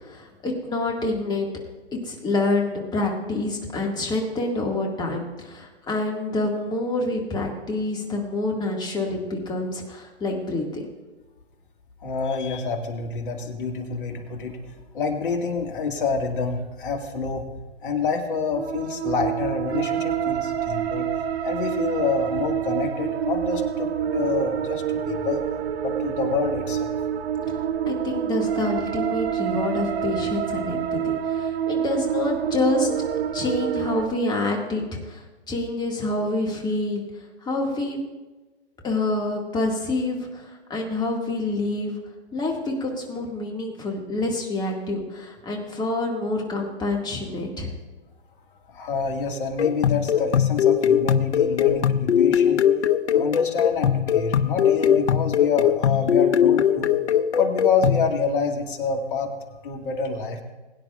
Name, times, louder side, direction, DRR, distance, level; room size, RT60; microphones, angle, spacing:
voice 1, 0.0-1.5 1.9-10.9 27.8-37.0 37.4-38.0 38.8-42.0 42.3-47.7, left 2 dB, 10° left, 0 dB, 2.0 m, -27 dB
voice 2, 12.0-14.6 14.9-17.5 17.8-21.1 21.4-25.5 25.8-27.0 48.7-52.6 53.1-56.9 57.4-59.3 59.6-60.4, left 4 dB, 50° left, 2 dB, 2.2 m, -27 dB
sound 1, 18.5-34.1, right 9 dB, 65° right, 1.1 m, -27 dB
sound 2, 49.6-58.1, left 9 dB, 85° left, 0.7 m, -20 dB
22.0 x 10.0 x 2.5 m, 1.2 s
hypercardioid pair, 130°, 33 cm